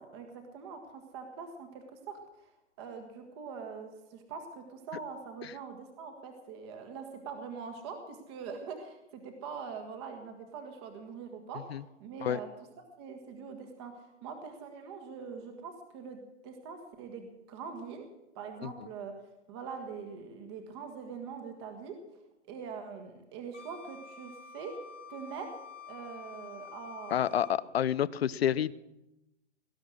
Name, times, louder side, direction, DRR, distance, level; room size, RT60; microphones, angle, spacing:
voice 1, 0.1-2.5 2.8-11.7 12.0-12.5 13.0-18.1 18.3-19.1 19.5-21.9 22.5-24.7 25.1-25.5 25.9-27.6, right 5 dB, 20° right, 5 dB, 1.7 m, -43 dB
Wind instrument woodwind instrument, 23.5-27.6, left 6 dB, 90° left, 1.5 m, -49 dB
voice 2, 27.1-28.7, left 10 dB, 60° left, 19 dB, 0.7 m, -29 dB
19.0 x 11.5 x 6.4 m, 0.92 s
hypercardioid pair, 165°, 36 cm